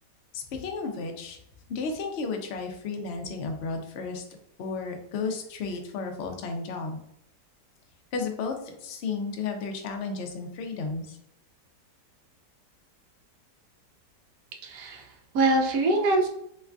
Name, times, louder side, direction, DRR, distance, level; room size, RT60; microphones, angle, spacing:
voice 1, 0.3-1.4 1.7-4.2 4.6-7.0 8.1-11.2, left 4 dB, 70° left, 4 dB, 0.6 m, -33 dB
voice 2, 14.6-16.3, right 2 dB, 70° right, 1 dB, 1.1 m, -24 dB
3.3 x 3.1 x 2.4 m, 0.76 s
omnidirectional pair, 1.8 m